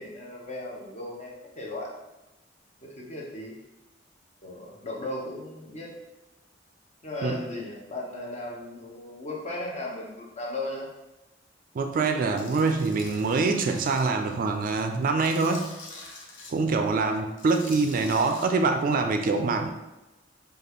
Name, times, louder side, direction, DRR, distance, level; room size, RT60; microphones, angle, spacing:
voice 1, 0.0-2.0 2.8-3.6 4.4-5.9 7.0-10.9 16.7-17.2, left 1 dB, 35° left, -3 dB, 0.9 m, -36 dB
voice 2, 11.7-15.7 16.5-19.7, right 3 dB, 45° right, 6 dB, 0.3 m, -25 dB
Tools, 12.4-14.1 14.5-16.5 17.3-18.5, left 3 dB, 85° left, 0.7 m, -45 dB
5.1 x 2.4 x 3.0 m, 1.0 s
head